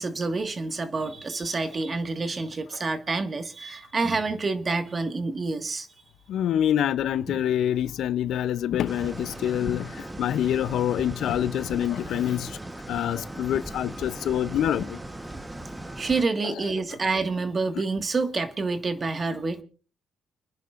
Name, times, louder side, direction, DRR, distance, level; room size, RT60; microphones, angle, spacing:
voice 1, 0.0-5.9 7.3-7.4 16.0-19.6, right 3 dB, 35° right, 1.7 m, -28 dB
voice 2, 6.3-12.5 12.9-15.0, left 10 dB, 75° left, 0.6 m, -26 dB
sound 1, 8.9-16.2, right 1 dB, 15° right, 1.1 m, -38 dB
29.5 x 10.0 x 2.5 m
cardioid pair, 90°, 0 cm